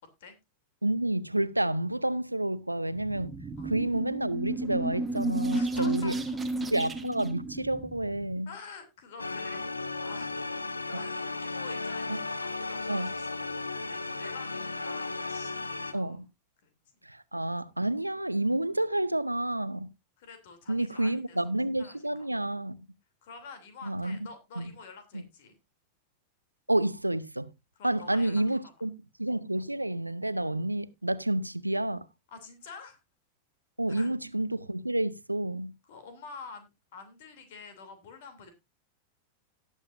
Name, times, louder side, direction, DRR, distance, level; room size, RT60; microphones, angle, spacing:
voice 1, 0.8-3.3 3.6-6.1 6.7-8.5 10.9-11.0 12.1-12.2 12.9-13.1 15.9-16.3 17.1-19.9 20.7-22.8 23.8-24.2 24.6-24.7 25.1-25.2 26.7-27.5 27.8-28.9 29.2-32.0 33.8-35.7, right 1 dB, 85° right, 0.5 m, -29 dB
sound 1, 2.9-8.3, right 2 dB, 15° right, 1.2 m, -33 dB
voice 2, 5.5-6.2 8.5-10.6 10.9-13.3 13.7-16.3 16.6-16.7 20.2-21.5 21.8-22.0 23.2-25.6 27.8-28.7 32.3-33.0 33.9-34.1 35.9-38.5, left 5 dB, 55° left, 2.9 m, -48 dB
sound 2, 9.2-15.9, left 3 dB, 80° left, 0.9 m, -35 dB
18.0 x 7.3 x 2.6 m
figure-of-eight pair, 90°, 0 cm